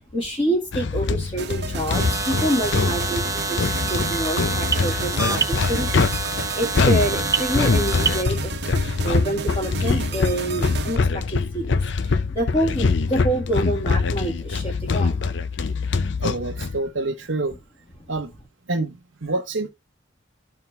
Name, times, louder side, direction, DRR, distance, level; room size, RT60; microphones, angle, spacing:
voice 1, 0.1-15.2, right 1 dB, 25° left, 2.1 m, -27 dB
sound 1, 0.7-16.8, left 4 dB, 65° left, 0.6 m, -24 dB
sound 2, 1.4-11.0, right 5 dB, 60° right, 0.9 m, -33 dB
sound 3, 1.9-8.2, right 4 dB, 15° right, 0.6 m, -27 dB
voice 2, 16.2-17.6 18.1-18.3 18.7-19.7, right 2 dB, 85° right, 1.2 m, -27 dB
13.0 x 4.8 x 3.5 m
head